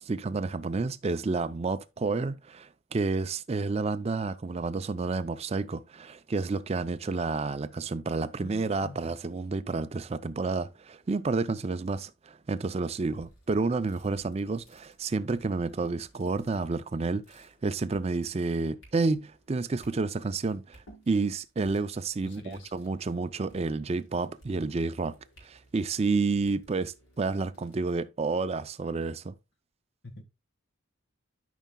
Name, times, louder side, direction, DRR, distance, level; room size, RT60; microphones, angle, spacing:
voice 1, 0.0-25.1 25.4-29.3, right 3 dB, 30° right, 0.4 m, -30 dB
voice 2, 8.4-9.1 22.2-22.7 30.0-30.2, left 1 dB, 55° left, 1.5 m, -45 dB
sound 1, 13.0-27.9, right 1 dB, 85° left, 4.5 m, -60 dB
12.5 x 5.5 x 2.2 m
head